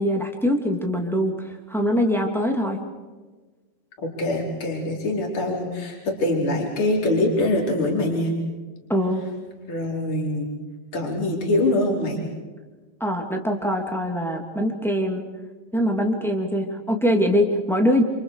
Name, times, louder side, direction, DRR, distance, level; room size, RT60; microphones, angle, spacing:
voice 1, 0.0-2.8 8.9-9.2 13.0-15.2 15.7-18.0, equal, ahead, 1 dB, 1.7 m, -23 dB
voice 2, 4.0-8.3 9.7-10.5 10.9-12.2, left 1 dB, 30° left, -1 dB, 5.0 m, -24 dB
30.0 x 28.0 x 5.0 m, 1.3 s
omnidirectional pair, 4.9 m